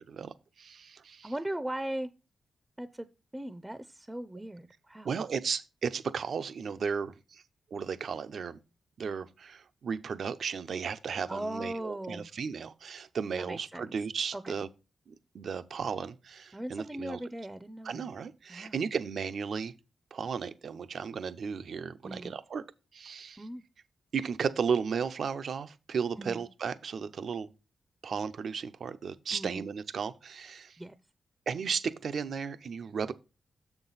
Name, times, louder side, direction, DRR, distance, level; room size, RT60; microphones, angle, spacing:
voice 1, 0.1-1.3 5.0-7.4 7.7-8.6 9.0-14.7 15.1-17.2 17.8-19.7 20.1-22.6 22.9-23.4 24.1-27.5 28.0-30.8 31.5-33.1, right 6 dB, 70° right, 0.6 m, -35 dB
voice 2, 1.2-2.1 2.8-3.1 3.3-5.1 11.3-12.3 13.4-13.9 14.3-14.5 16.5-18.1 18.5-18.8 22.0-22.3 23.4-23.6 26.2-26.5 29.3-29.7 30.8-30.9, right 1 dB, 15° right, 0.6 m, -38 dB
6.8 x 5.9 x 4.0 m
cardioid pair, 55°, 0 cm